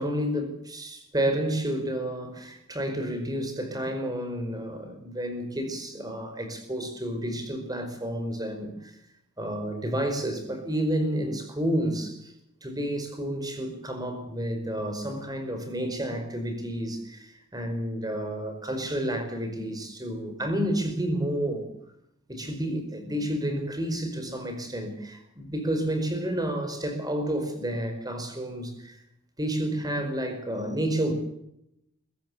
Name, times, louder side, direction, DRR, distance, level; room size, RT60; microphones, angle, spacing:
voice 1, 0.0-9.0 9.4-12.3 12.6-21.7 22.3-29.0 29.4-31.1, right 1 dB, 20° right, 7 dB, 5.1 m, -30 dB
23.0 x 15.0 x 8.5 m, 0.80 s
head